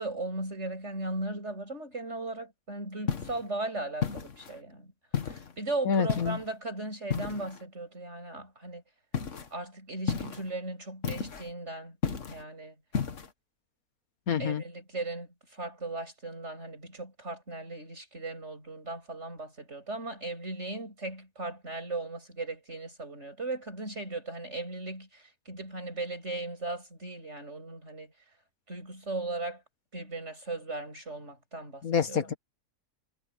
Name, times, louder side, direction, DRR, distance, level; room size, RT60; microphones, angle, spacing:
voice 1, 0.0-4.9 5.2-8.8 9.5-12.0 12.3-12.8 14.4-28.1 28.7-29.6 29.9-32.3, right 2 dB, 55° right, 8.5 m, -37 dB
sound 1, 3.1-3.5 4.0-4.6 5.1-5.5 6.1-6.5 7.1-7.6 9.1-9.5 10.1-10.5 11.0-11.5 12.0-12.4 12.9-13.3, left 6 dB, 60° left, 1.8 m, -32 dB
voice 2, 5.9-6.4 14.3-14.6 31.8-32.3, left 6 dB, 80° left, 2.1 m, -27 dB
omnidirectional pair, 1.5 m